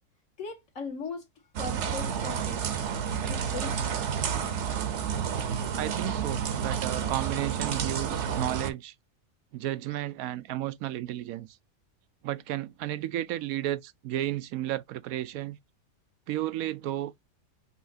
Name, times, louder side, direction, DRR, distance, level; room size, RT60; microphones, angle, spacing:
voice 1, 0.4-1.3 1.6-2.8 3.3-3.9 4.2-4.3, left 4 dB, 65° left, 1.6 m, -39 dB
sound 1, 1.6-8.7, right 7 dB, 60° right, 1.0 m, -30 dB
voice 2, 5.7-8.9 9.5-11.6 12.2-15.6 16.3-17.1, right 13 dB, 85° right, 1.0 m, -33 dB
5.6 x 2.8 x 2.7 m
omnidirectional pair, 1.5 m